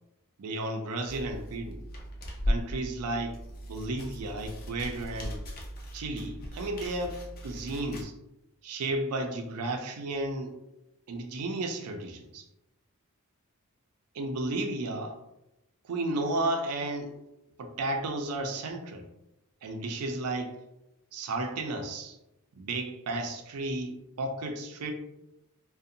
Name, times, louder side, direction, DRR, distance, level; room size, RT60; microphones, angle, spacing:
voice 1, 0.4-1.8 2.5-3.4 3.6-5.4 5.9-8.1 8.6-10.5 11.1-12.4 14.1-15.2 15.8-17.1 17.6-19.0 19.6-20.6 21.1-22.2 22.6-24.9, right 2 dB, 90° right, 4 dB, 0.4 m, -33 dB
sound 1, 1.0-8.0, equal, 45° left, 0.5 m, -37 dB
2.5 x 2.1 x 2.6 m, 0.90 s
head